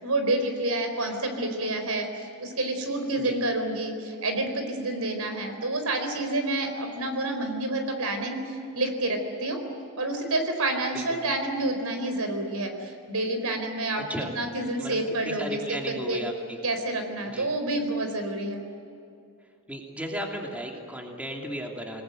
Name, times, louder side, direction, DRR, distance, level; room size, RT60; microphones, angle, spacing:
voice 1, 0.0-2.1 2.4-8.4 8.7-9.6 10.0-14.0 14.3-16.2 16.6-18.6, right 2 dB, 80° right, 6 dB, 4.5 m, -28 dB
voice 2, 13.9-14.3 14.8-15.0 15.2-16.6 17.3-17.5 19.7-22.0, equal, 5° right, 0 dB, 3.0 m, -35 dB
28.5 x 20.0 x 9.3 m, 2.5 s
head